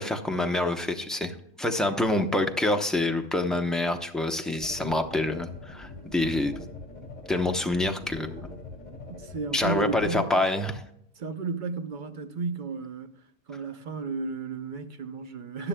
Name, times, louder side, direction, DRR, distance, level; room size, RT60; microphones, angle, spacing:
voice 1, 0.0-6.6 7.3-8.5 9.5-10.8, left 2 dB, ahead, 0.4 m, -27 dB
sound 1, 4.6-10.2, left 3 dB, 30° left, 3.0 m, -42 dB
voice 2, 9.1-10.3 11.2-13.1 13.5-15.7, right 4 dB, 45° right, 0.8 m, -33 dB
15.5 x 10.0 x 2.2 m
omnidirectional pair, 1.5 m